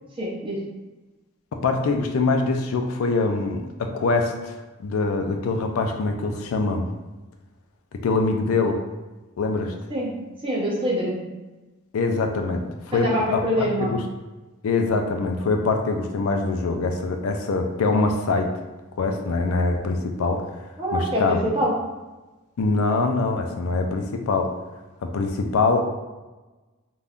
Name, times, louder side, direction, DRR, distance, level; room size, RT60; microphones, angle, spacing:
voice 1, 0.2-0.6 9.9-10.1 10.4-11.2 12.9-13.9 20.8-21.7, equal, 25° right, -4 dB, 0.7 m, -25 dB
voice 2, 1.5-6.9 8.0-8.8 9.4-9.7 11.9-14.0 14.6-18.5 19.0-20.7 20.9-21.5 22.6-24.5 25.0-25.8, left 3 dB, 85° left, 4 dB, 0.4 m, -24 dB
2.5 x 2.2 x 3.5 m, 1.1 s
head